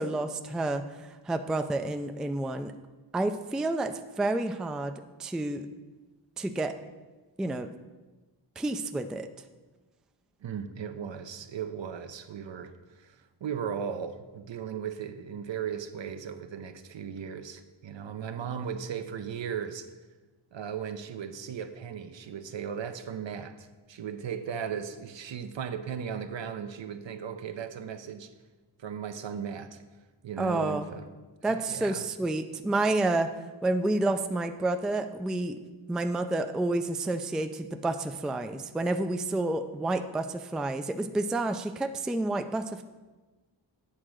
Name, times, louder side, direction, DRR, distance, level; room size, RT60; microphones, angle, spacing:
voice 1, 0.0-2.7 3.1-4.9 5.2-5.7 6.4-6.7 7.4-7.7 8.6-9.3 30.4-30.8 31.4-33.3 33.6-35.6 35.9-42.8, right 2 dB, ahead, 8 dB, 0.3 m, -29 dB
voice 2, 10.4-19.9 20.5-28.3 28.8-29.8 30.2-31.0 31.4-32.1, right 7 dB, 70° right, 9 dB, 0.7 m, -37 dB
8.7 x 3.7 x 6.2 m, 1.2 s
cardioid pair, 65°, 47 cm